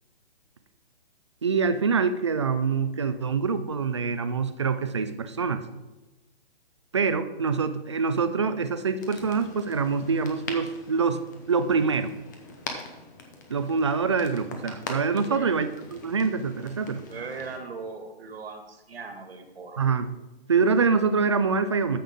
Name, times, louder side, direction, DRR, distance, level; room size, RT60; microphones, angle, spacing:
voice 1, 1.4-5.6 6.9-11.2 11.5-12.1 13.5-17.0 19.8-20.1 20.5-22.0, right 5 dB, 30° right, 10 dB, 0.4 m, -25 dB
sound 1, 9.0-17.6, left 3 dB, 20° left, 0.7 m, -42 dB
voice 2, 15.1-15.6 16.9-19.8, right 4 dB, 75° right, 5 dB, 1.9 m, -39 dB
14.0 x 5.7 x 3.6 m, 1.1 s
hypercardioid pair, 170°, 31 cm